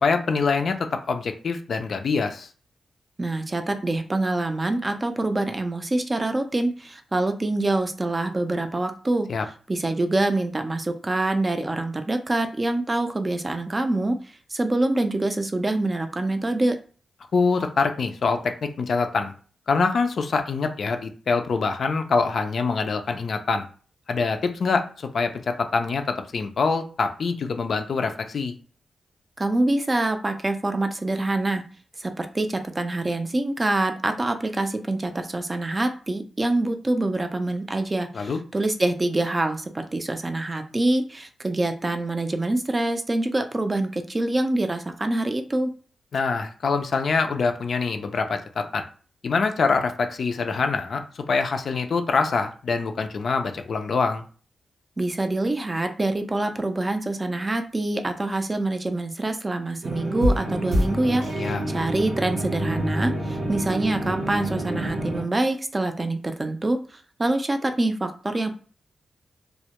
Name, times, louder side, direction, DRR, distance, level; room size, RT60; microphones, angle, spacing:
voice 1, 0.0-2.5 9.3-9.5 17.3-19.3 19.7-23.7 24.1-28.5 38.1-38.4 46.1-48.8 49.2-51.0 51.3-54.2 61.4-61.6, left 4 dB, 65° left, 6 dB, 0.3 m, -24 dB
voice 2, 3.2-9.3 9.7-16.8 29.4-31.6 32.0-45.7 55.0-68.5, right 2 dB, 30° right, 7 dB, 0.3 m, -25 dB
sound 1, 59.8-65.2, right 1 dB, 80° right, 0.7 m, -27 dB
2.1 x 2.0 x 2.8 m, 0.40 s
cardioid pair, 75°, 0 cm